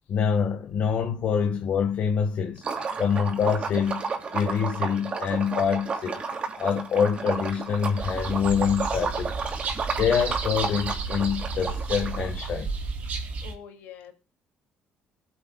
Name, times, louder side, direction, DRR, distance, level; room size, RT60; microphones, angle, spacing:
voice 1, 0.1-2.6 3.0-6.2 6.6-9.4 10.0-12.7, left 7 dB, 60° left, 1.6 m, -25 dB
Liquid, 2.6-12.5, right 5 dB, 40° right, 2.7 m, -32 dB
sound 1, 8.0-13.5, right 4 dB, 60° right, 3.3 m, -32 dB
voice 2, 13.4-14.1, left 8 dB, 90° left, 2.6 m, -44 dB
21.0 x 7.8 x 2.4 m
cardioid pair, 95°, 3 cm